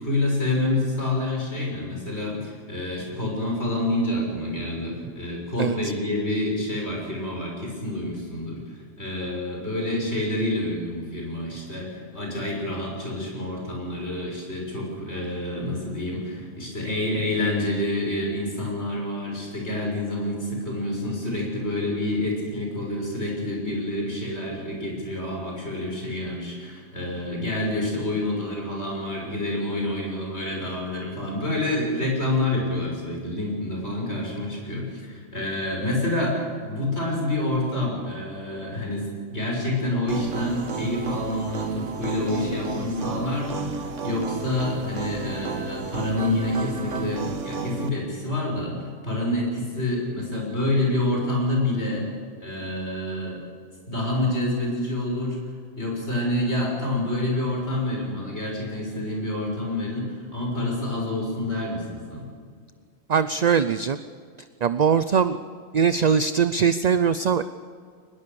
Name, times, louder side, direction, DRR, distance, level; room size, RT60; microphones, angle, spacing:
voice 1, 0.0-52.1 52.4-53.4 53.9-55.4 55.8-62.3, left 1 dB, 60° left, -1 dB, 6.5 m, -28 dB
sound 1, 40.1-47.9, right 5 dB, 85° right, 1.6 m, -32 dB
voice 2, 63.1-64.0 64.6-65.4 65.7-67.4, right 7 dB, 45° right, 12 dB, 0.6 m, -21 dB
23.0 x 20.5 x 7.0 m, 2.1 s
omnidirectional pair, 1.2 m